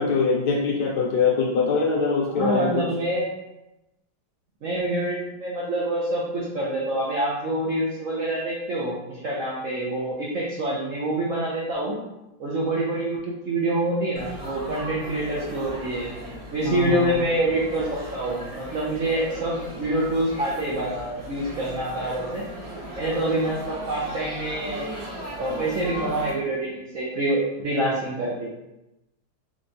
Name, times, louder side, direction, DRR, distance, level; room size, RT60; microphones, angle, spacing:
voice 1, 0.0-2.9 16.6-17.2, left 4 dB, 70° left, -2 dB, 1.2 m, -23 dB
voice 2, 2.3-3.3 4.6-12.0 12.4-13.2 13.5-16.1 16.5-22.5 23.0-24.9 25.4-28.5, right 1 dB, 65° right, -6 dB, 0.8 m, -26 dB
Laughter / Chatter / Crowd, 14.1-26.3, right 1 dB, 25° right, 0.9 m, -37 dB
3.5 x 3.2 x 2.6 m, 0.92 s
omnidirectional pair, 2.0 m